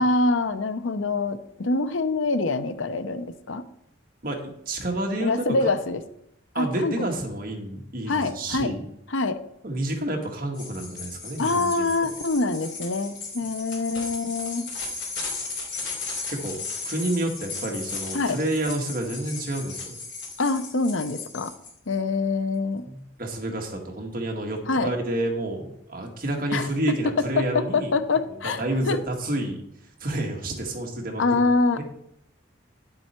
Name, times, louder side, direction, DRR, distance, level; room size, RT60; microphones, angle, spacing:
voice 1, 0.0-3.7 5.2-6.0 6.6-6.9 8.1-8.7 9.1-9.4 11.4-14.7 18.1-18.4 20.4-21.5 21.9-22.9 24.7-24.9 26.5-26.9 27.4-28.6 28.9-29.0 31.2-31.8, left 3 dB, 85° left, 11 dB, 0.8 m, -25 dB
voice 2, 4.2-5.3 5.6-5.7 6.5-8.9 9.6-12.1 16.3-16.6 16.8-20.0 22.9-27.9 28.3-29.6 30.0-31.4 31.8-31.9, right 1 dB, 45° right, 2 dB, 1.8 m, -29 dB
sound 1, 10.5-21.7, left 4 dB, 65° left, 3.4 m, -36 dB
10.0 x 7.7 x 4.4 m, 0.75 s
head